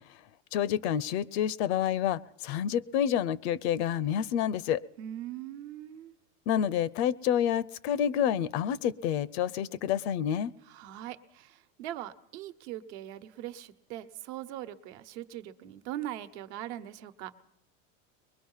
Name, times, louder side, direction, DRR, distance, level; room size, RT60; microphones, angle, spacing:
voice 1, 0.5-4.8 6.5-10.5, left 9 dB, 55° left, 22 dB, 0.6 m, -28 dB
voice 2, 5.0-6.2 10.6-17.3, right 12 dB, 60° right, 10 dB, 1.2 m, -41 dB
22.0 x 21.0 x 5.6 m, 0.81 s
supercardioid pair, 155°, 38 cm